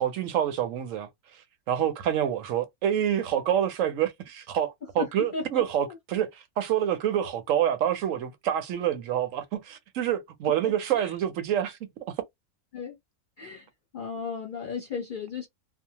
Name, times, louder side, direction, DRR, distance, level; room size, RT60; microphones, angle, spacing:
voice 1, 0.0-11.8, right 10 dB, 65° right, 0.9 m, -27 dB
voice 2, 5.0-6.0 10.6-11.1 12.7-13.0 13.4-13.7 13.9-15.5, left 5 dB, 40° left, 0.8 m, -35 dB
2.6 x 2.0 x 2.8 m
omnidirectional pair, 1.6 m